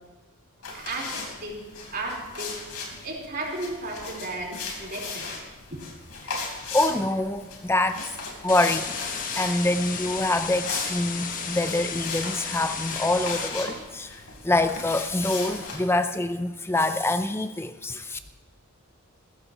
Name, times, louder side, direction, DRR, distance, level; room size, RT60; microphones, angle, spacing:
sound 1, 0.6-15.8, left 4 dB, 80° left, 3.9 m, -37 dB
voice 1, 0.7-1.1 1.4-1.6 1.9-2.7 3.0-5.4 5.7-5.8, right 2 dB, 45° right, -2 dB, 4.0 m, -34 dB
voice 2, 6.7-8.0 8.4-9.0 9.4-18.2, left 2 dB, 10° left, 9 dB, 0.5 m, -25 dB
sound 2, 8.5-13.5, left 6 dB, 40° left, 1.3 m, -33 dB
21.0 x 15.0 x 3.0 m, 1.2 s
head